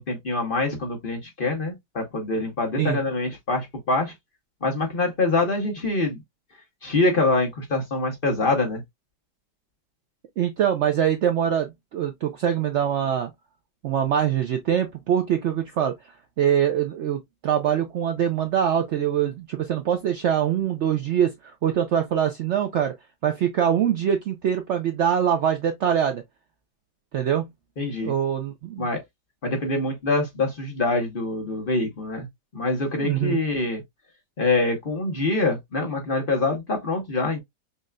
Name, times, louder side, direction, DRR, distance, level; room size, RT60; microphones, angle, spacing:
voice 1, 0.0-4.1 4.6-6.2 6.8-8.8 27.8-28.1 28.8-29.0 29.4-32.3 32.5-33.8 34.4-37.4, left 2 dB, 40° left, 1.0 m, -25 dB
voice 2, 10.4-13.3 13.8-15.9 16.4-22.9 23.2-26.2 27.1-27.5 28.0-28.9 33.0-33.4, right 9 dB, 90° right, 0.6 m, -23 dB
5.7 x 2.5 x 2.2 m
omnidirectional pair, 1.8 m